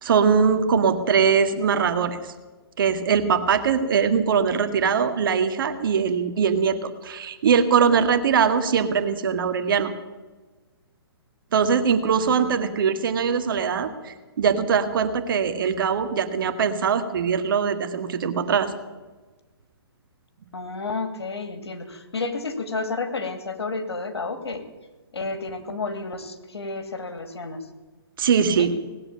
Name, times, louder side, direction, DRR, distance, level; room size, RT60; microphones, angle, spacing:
voice 1, 0.0-2.2 2.8-9.9 11.5-18.7 28.2-28.7, right 6 dB, 55° right, 8 dB, 1.7 m, -21 dB
voice 2, 12.2-12.8 20.5-24.6 25.1-27.6 28.6-28.7, left 3 dB, 85° left, 8 dB, 2.3 m, -31 dB
18.5 x 7.9 x 8.7 m, 1.3 s
hypercardioid pair, 145°, 13 cm